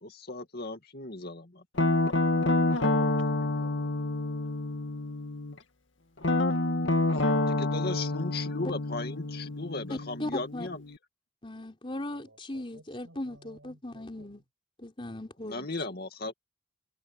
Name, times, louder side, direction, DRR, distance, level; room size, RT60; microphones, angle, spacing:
voice 1, 0.0-1.6 7.5-10.8 15.4-16.3, left 3 dB, 50° left, 2.4 m, -36 dB
Guitar, 1.8-5.5 6.2-11.0, left 2 dB, 65° left, 2.1 m, -28 dB
voice 2, 2.3-3.9 7.2-7.4 8.1-8.3 9.3-9.4 11.9-14.3, right 2 dB, 75° right, 7.0 m, -52 dB
voice 3, 9.9-10.7 11.4-14.4 14.8-15.7, left 1 dB, 25° left, 3.8 m, -38 dB
open air
head